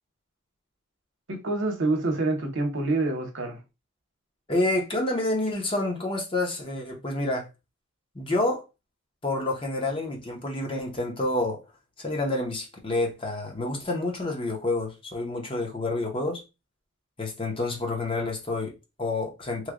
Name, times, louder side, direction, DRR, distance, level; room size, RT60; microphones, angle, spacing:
voice 1, 1.3-3.6, right 2 dB, 65° right, 0.9 m, -27 dB
voice 2, 4.5-7.5 8.1-8.6 9.2-11.6 12.0-16.4 17.2-19.7, left 2 dB, 25° left, 0.8 m, -28 dB
3.1 x 2.2 x 3.6 m
head